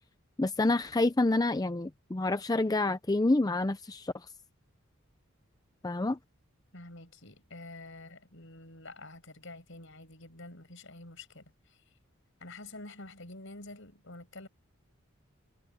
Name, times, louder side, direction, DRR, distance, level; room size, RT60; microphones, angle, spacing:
voice 1, 0.4-4.3 5.8-6.2, left 2 dB, 20° left, 0.5 m, -28 dB
voice 2, 6.7-11.8 12.4-14.5, left 2 dB, 65° left, 7.1 m, -48 dB
head